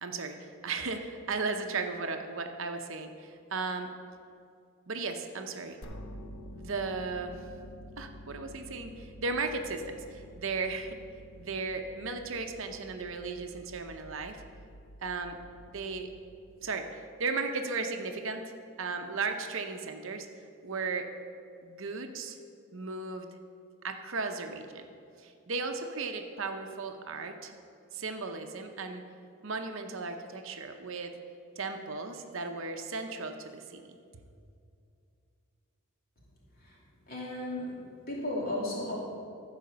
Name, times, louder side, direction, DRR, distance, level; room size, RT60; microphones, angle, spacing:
voice 1, 0.0-3.9 4.9-5.8 6.5-7.5 8.0-11.0 11.4-14.4 15.0-15.4 15.7-16.1 16.6-20.3 20.6-21.1 21.6-22.4 22.7-23.3 23.8-24.9 25.2-27.5 27.9-29.0 29.4-31.1 31.6-34.0, right 4 dB, 60° right, 6 dB, 0.7 m, -36 dB
sound 1, 5.8-16.8, equal, 75° left, 0.9 m, -49 dB
voice 2, 37.1-37.8 38.1-39.0, left 1 dB, 40° left, -5 dB, 2.8 m, -34 dB
14.5 x 5.0 x 6.8 m, 2.4 s
head